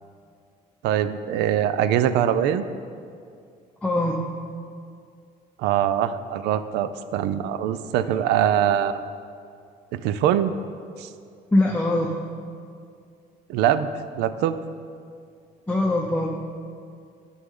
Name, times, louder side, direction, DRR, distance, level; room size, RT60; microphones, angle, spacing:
voice 1, 0.8-2.6 5.6-9.0 9.9-10.5 11.0-11.1 13.5-13.9 14.2-14.6, right 10 dB, 90° right, 13 dB, 0.4 m, -23 dB
voice 2, 3.8-4.2 11.5-12.1 15.7-16.4, left 1 dB, 5° left, 0 dB, 0.6 m, -22 dB
11.0 x 6.4 x 3.8 m, 2.3 s
cardioid pair, 110°, 17 cm